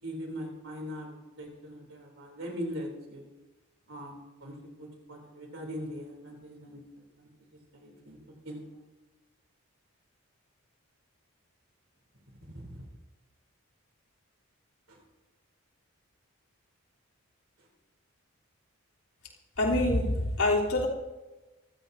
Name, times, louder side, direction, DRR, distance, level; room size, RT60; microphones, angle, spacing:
voice 1, 0.0-3.2 3.9-6.8 7.2-7.3 7.7-8.2 8.4-8.8 12.5-12.8 14.9-15.0, equal, 65° right, 0 dB, 3.2 m, -41 dB
voice 2, 19.6-20.9, left 1 dB, 85° left, -3 dB, 3.5 m, -25 dB
25.5 x 16.0 x 2.7 m, 1.1 s
head